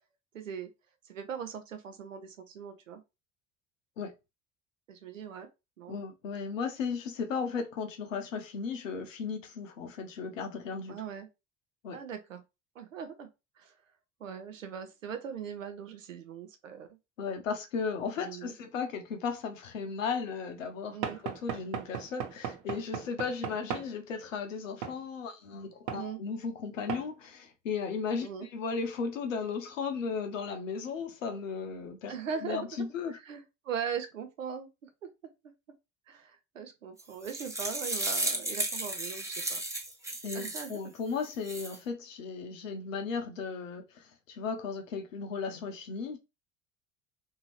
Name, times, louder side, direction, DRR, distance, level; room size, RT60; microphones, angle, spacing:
voice 1, 0.3-0.7 1.0-3.0 4.9-5.5 5.8-5.9 10.9-11.3 11.9-12.4 12.8-13.3 13.6-13.7 14.2-17.0 18.2-18.5 20.9-21.2 25.9-26.2 28.2-28.5 32.1-32.8 33.1-35.1 36.1-39.6 40.3-40.8, right 7 dB, 90° right, 0.6 m, -40 dB
voice 2, 5.9-11.0 11.8-12.0 17.2-21.0 21.2-32.1 32.4-33.2 40.2-46.2, left 5 dB, 80° left, 0.7 m, -35 dB
Knock / Wood, 21.0-23.9 24.8-25.0 25.9-26.1 26.9-27.1, right 8 dB, 55° right, 0.8 m, -37 dB
sound 1, 37.0-40.8 41.2-41.8, right 1 dB, 10° right, 0.9 m, -34 dB
2.8 x 2.7 x 3.0 m
figure-of-eight pair, 60°, 38 cm